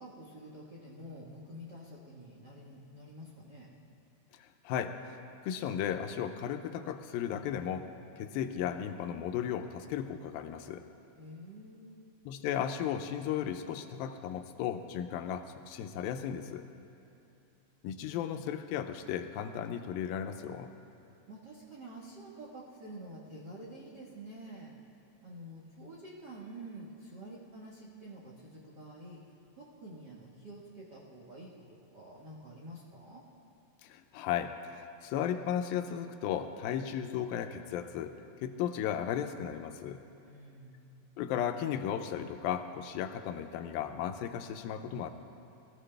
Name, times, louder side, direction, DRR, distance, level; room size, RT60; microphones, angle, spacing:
voice 1, 0.0-3.7 11.2-12.0 21.3-24.8 25.2-33.2 40.2-40.8, right 1 dB, 55° right, -5 dB, 1.1 m, -48 dB
voice 2, 4.3-5.2 5.4-7.9 8.2-10.8 12.3-16.7 17.8-20.7 33.8-40.1 41.2-45.1, left 9 dB, 90° left, 8 dB, 2.5 m, -35 dB
20.5 x 14.5 x 3.4 m, 2.9 s
omnidirectional pair, 4.1 m